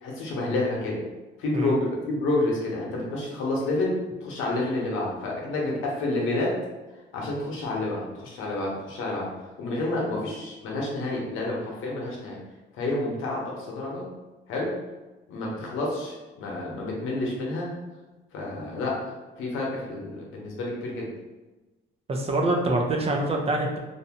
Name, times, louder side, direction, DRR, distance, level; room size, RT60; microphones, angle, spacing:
voice 1, 0.0-1.0 1.4-6.5 7.1-9.3 9.6-12.4 12.7-14.0 14.5-14.7 15.3-17.7 18.3-19.0 19.4-21.1, left 2 dB, 90° left, -3 dB, 0.7 m, -29 dB
voice 2, 22.1-23.8, right 2 dB, 30° right, 1 dB, 0.5 m, -25 dB
2.6 x 2.1 x 2.8 m, 1.1 s
cardioid pair, 90°, 20 cm